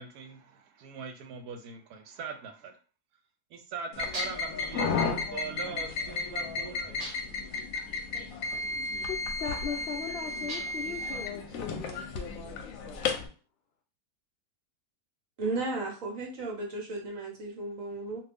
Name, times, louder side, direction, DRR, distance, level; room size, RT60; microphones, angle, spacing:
voice 1, 0.0-2.8 3.5-7.1, right 6 dB, 85° right, 6 dB, 1.1 m, -41 dB
sound 1, 3.9-13.3, left 4 dB, 70° left, 0.9 m, -33 dB
sound 2, 4.1-4.6 7.0-7.5 10.5-10.9, right 1 dB, 45° right, 0.5 m, -39 dB
voice 2, 9.1-13.1, left 6 dB, 85° left, 0 dB, 0.5 m, -39 dB
voice 3, 15.4-18.2, right 2 dB, 65° right, 0 dB, 1.3 m, -34 dB
2.6 x 2.5 x 3.3 m, 0.38 s
omnidirectional pair, 1.6 m